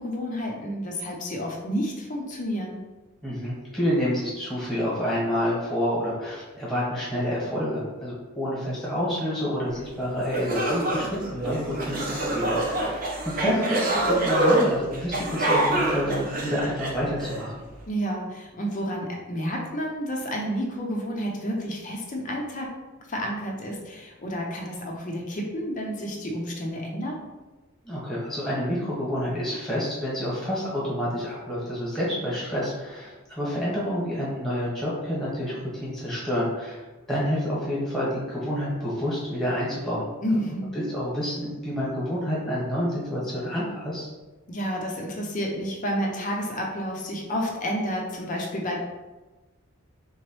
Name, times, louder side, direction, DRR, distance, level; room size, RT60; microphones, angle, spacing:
voice 1, 0.0-2.8 13.4-13.8 17.9-22.7 23.0-27.2 40.2-40.7 44.5-48.8, equal, 35° left, 0 dB, 0.5 m, -30 dB
voice 2, 3.2-13.6 14.0-17.6 27.8-36.8 37.1-40.1 40.9-44.1, equal, ahead, -7 dB, 1.2 m, -28 dB
sound 1, 9.9-10.0 10.3-17.4, right 1 dB, 40° right, 0.6 m, -25 dB
3.6 x 3.0 x 3.0 m, 1.2 s
head